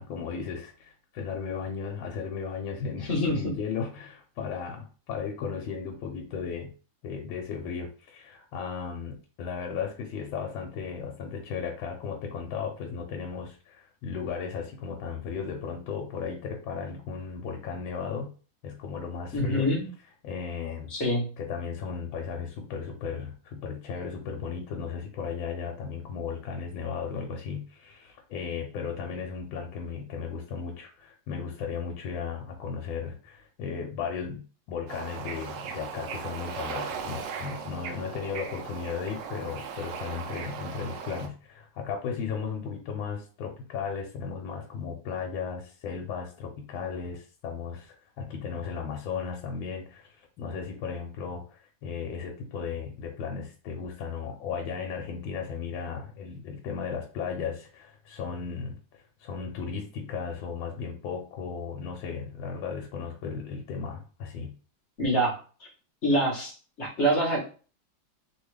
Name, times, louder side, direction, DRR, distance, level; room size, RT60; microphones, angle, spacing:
voice 1, 0.0-6.7 7.0-18.3 18.6-19.7 20.2-20.9 21.4-64.5, left 6 dB, 80° left, 2 dB, 1.4 m, -35 dB
voice 2, 3.1-3.5 19.3-19.9 20.9-21.3 65.0-65.4 66.0-67.4, equal, 45° left, -2 dB, 1.0 m, -25 dB
Bird / Ocean, 34.9-41.3, right 6 dB, 75° right, 1.1 m, -38 dB
3.4 x 2.3 x 3.1 m, 0.38 s
omnidirectional pair, 2.2 m